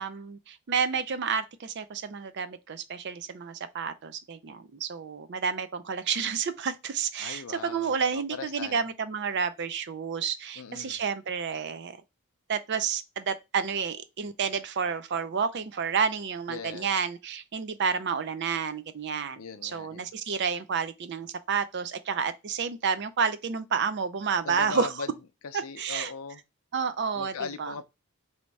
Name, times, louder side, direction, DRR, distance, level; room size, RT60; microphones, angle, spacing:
voice 1, 0.0-11.9 12.5-24.9 25.8-26.1 26.7-27.7, right 6 dB, 50° right, 0.4 m, -30 dB
voice 2, 7.2-8.9 10.6-11.0 16.5-17.0 19.4-20.1 24.4-25.1 25.4-26.4 27.1-27.8, left 5 dB, 70° left, 0.5 m, -39 dB
3.1 x 2.8 x 4.6 m
head